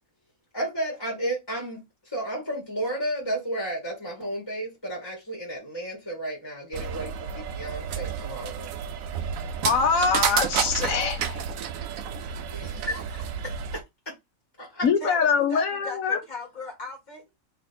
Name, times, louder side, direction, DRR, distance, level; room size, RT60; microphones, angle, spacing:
voice 1, 0.5-8.7 12.5-14.1 14.6-14.8, right 1 dB, 15° left, 1.6 m, -33 dB
sound 1, 6.7-13.8, right 7 dB, 80° right, 1.0 m, -31 dB
voice 2, 9.6-11.4 14.8-16.2, left 5 dB, 80° left, 1.3 m, -23 dB
voice 3, 15.0-17.2, left 2 dB, 35° left, 1.7 m, -38 dB
3.3 x 3.0 x 4.1 m
omnidirectional pair, 1.5 m